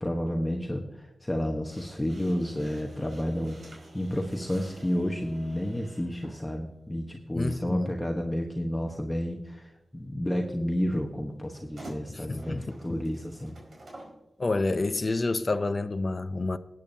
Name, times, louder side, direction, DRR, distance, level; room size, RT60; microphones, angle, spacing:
voice 1, 0.0-13.6, equal, 10° left, 1.0 m, -31 dB
sound 1, 1.7-6.4 7.5-7.7 11.5-14.2, right 1 dB, 60° right, 4.8 m, -49 dB
voice 2, 7.3-7.9 12.1-13.0 14.4-16.6, left 3 dB, 40° left, 0.5 m, -29 dB
19.5 x 8.8 x 2.7 m
wide cardioid pair, 85°, 0 cm